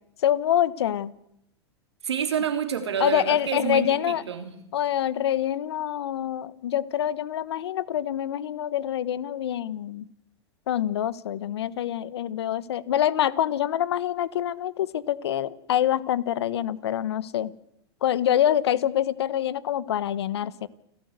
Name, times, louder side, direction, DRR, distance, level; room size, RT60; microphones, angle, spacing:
voice 1, 0.2-1.1 3.0-4.2 4.7-10.0 10.7-17.5 18.0-20.7, left 11 dB, 75° left, 19 dB, 1.1 m, -26 dB
voice 2, 2.0-4.6, right 8 dB, 85° right, 6 dB, 3.3 m, -28 dB
29.0 x 13.5 x 8.1 m, 0.81 s
hypercardioid pair, 105°, 14 cm